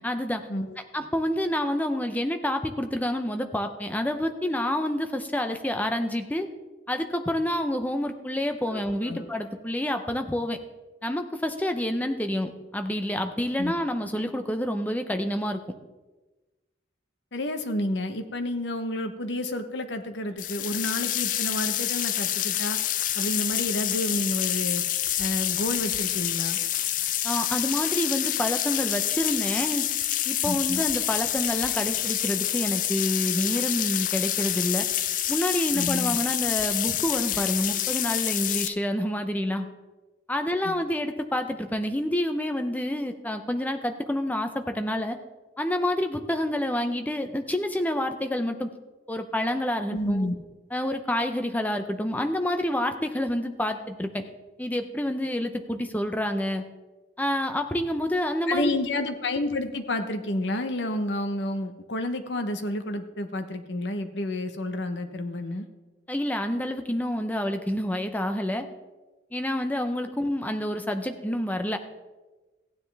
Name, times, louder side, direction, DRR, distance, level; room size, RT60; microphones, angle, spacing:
voice 1, 0.0-0.4 0.9-6.5 6.9-10.6 11.0-15.6 27.2-29.8 30.2-34.9 35.3-39.7 40.3-45.2 45.6-48.7 49.1-50.3 50.7-54.2 54.6-56.6 57.2-58.7 66.1-68.7 69.3-71.8, left 1 dB, 10° left, 7 dB, 0.6 m, -28 dB
voice 2, 8.7-9.3 13.6-13.7 17.3-22.8 23.1-24.8 25.2-26.6 30.4-30.8 35.7-36.2 40.6-40.8 49.9-50.3 58.5-65.7, left 1 dB, 70° left, 7 dB, 1.0 m, -30 dB
sound 1, 20.4-38.7, left 12 dB, 45° left, 0.4 m, -27 dB
15.0 x 9.5 x 3.4 m, 1.2 s
head